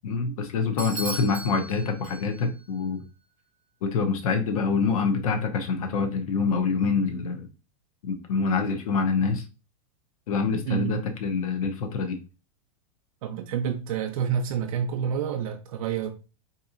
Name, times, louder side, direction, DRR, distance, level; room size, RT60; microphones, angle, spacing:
voice 1, 0.0-3.0 3.8-7.5 8.0-9.5 10.3-12.2, left 4 dB, 75° left, 0.7 m, -26 dB
Bell / Doorbell, 0.8-2.6, right 3 dB, 5° right, 0.9 m, -37 dB
voice 2, 10.7-11.0 13.2-16.1, right 8 dB, 70° right, 0.5 m, -28 dB
3.9 x 2.8 x 2.4 m
supercardioid pair, 145°, 19 cm